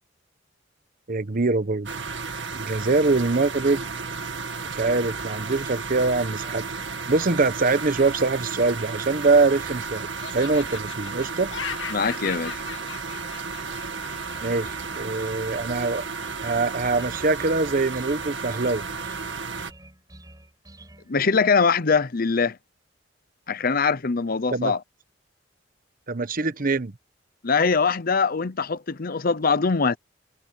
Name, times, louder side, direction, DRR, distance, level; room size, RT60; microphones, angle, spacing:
voice 1, 1.1-1.9 2.5-3.9 4.7-6.6 7.1-11.5 14.4-16.0 16.4-18.8 24.5-24.7 26.1-26.9, right 3 dB, 50° right, 1.0 m, -23 dB
sound 1, 1.9-19.7, right 4 dB, 70° right, 2.3 m, -33 dB
Laughter, 9.1-9.8 10.2-14.6, left 7 dB, 85° left, 2.0 m, -38 dB
voice 2, 11.9-12.6 21.1-22.6 23.5-24.8 27.4-30.0, left 5 dB, 50° left, 0.8 m, -22 dB
sound 2, 14.3-21.3, right 1 dB, 20° right, 5.0 m, -49 dB
head